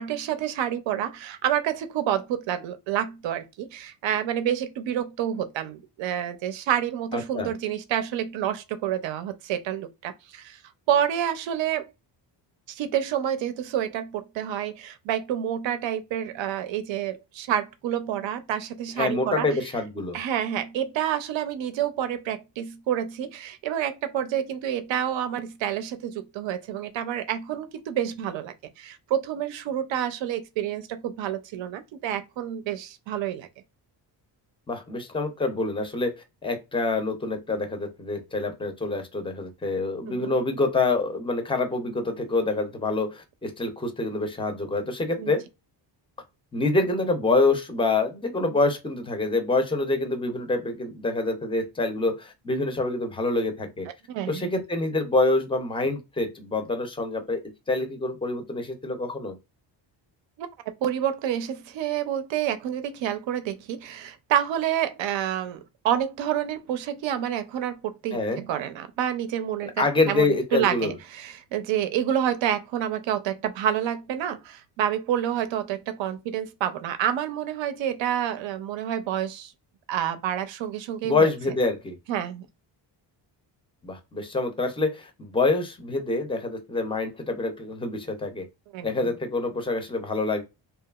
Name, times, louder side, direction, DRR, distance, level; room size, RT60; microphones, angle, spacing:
voice 1, 0.0-10.6 10.9-11.9 12.7-19.5 20.1-33.5 40.1-40.3 45.2-45.3 54.1-54.5 60.4-60.5 60.8-69.7 70.0-79.5 79.9-81.3 82.1-82.5 88.7-89.1, right 10 dB, 75° right, 0.6 m, -28 dB
voice 2, 7.1-7.5 19.0-20.2 34.7-36.1 36.4-45.4 46.5-53.9 54.3-59.4 68.1-68.4 69.6-70.9 81.0-82.0 83.8-88.5 88.8-90.4, left 3 dB, 10° left, 0.4 m, -26 dB
2.8 x 2.3 x 2.3 m
cardioid pair, 140°, 45 cm